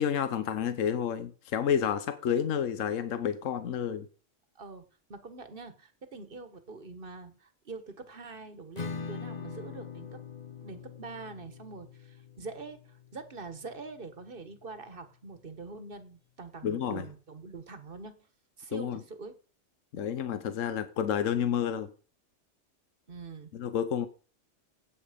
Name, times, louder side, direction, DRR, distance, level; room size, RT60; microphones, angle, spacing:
voice 1, 0.0-4.1 16.6-17.0 18.7-19.0 19.9-21.9 23.5-24.1, left 8 dB, 80° left, 1.2 m, -30 dB
voice 2, 4.5-10.2 10.6-18.2 18.6-19.4 23.1-23.5, right 4 dB, 45° right, 1.6 m, -44 dB
Acoustic guitar / Strum, 8.8-14.2, left 5 dB, 40° left, 0.8 m, -43 dB
14.0 x 8.9 x 5.1 m
omnidirectional pair, 1.3 m